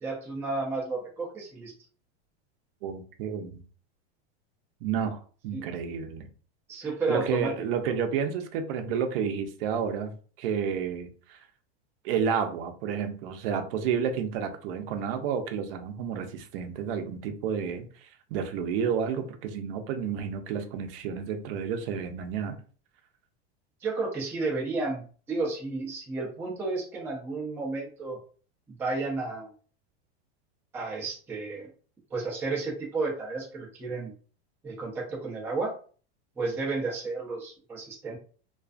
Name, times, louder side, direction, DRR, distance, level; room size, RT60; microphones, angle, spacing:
voice 1, 0.0-1.7 5.5-5.7 6.7-7.5 7.9-8.0 23.8-28.2 28.8-29.5 30.7-31.7 32.1-34.1 34.6-35.7 36.4-38.2, right 3 dB, 5° right, 0.4 m, -32 dB
voice 2, 2.8-3.6 4.8-6.3 7.1-10.1 10.4-11.4 12.0-17.8 18.3-22.6, right 7 dB, 60° right, 0.6 m, -30 dB
2.4 x 2.3 x 2.4 m
supercardioid pair, 145°, 33 cm